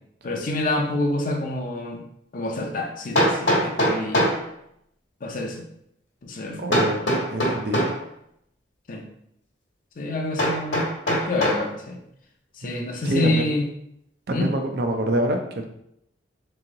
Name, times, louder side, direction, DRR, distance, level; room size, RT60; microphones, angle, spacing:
voice 1, 0.2-2.0 2.3-4.3 5.2-5.7 6.2-6.6 8.9-9.0 10.0-12.0 12.6-13.6 14.3-14.5, left 2 dB, 45° left, 1 dB, 0.5 m, -27 dB
Hammer, 3.2-4.4 6.7-8.0 10.4-11.7, equal, 70° left, 1.2 m, -22 dB
voice 2, 6.6-7.0 7.3-7.9 12.6-13.5 14.3-15.6, right 1 dB, 55° right, 4 dB, 0.5 m, -26 dB
3.0 x 2.7 x 3.7 m, 0.76 s
head